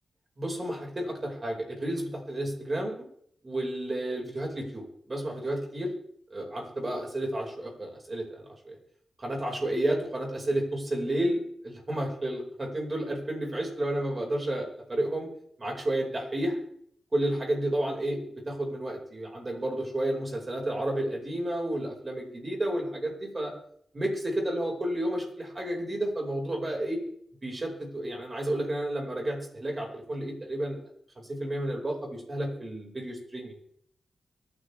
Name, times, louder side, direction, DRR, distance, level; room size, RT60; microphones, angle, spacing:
voice 1, 0.4-3.0 3.4-5.9 6.3-8.8 9.2-15.3 15.6-16.6 17.1-18.2 18.5-23.5 23.9-27.0 27.4-30.8 31.3-33.7, right 1 dB, 35° right, 0 dB, 5.2 m, -31 dB
24.5 x 9.9 x 3.5 m, 0.66 s
cardioid pair, 75°, 0 cm